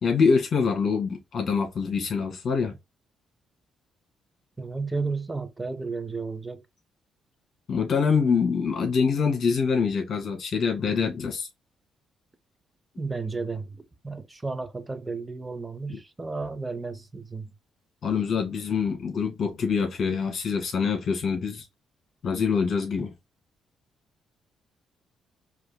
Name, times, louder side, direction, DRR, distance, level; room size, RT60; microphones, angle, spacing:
voice 1, 0.0-2.7 7.7-11.5 18.0-21.6 22.2-23.1, left 5 dB, 55° left, 1.9 m, -25 dB
voice 2, 4.6-6.6 13.0-17.5 23.0-23.1, right 4 dB, 15° right, 0.7 m, -33 dB
4.9 x 2.8 x 2.2 m
cardioid pair, 90°, 0 cm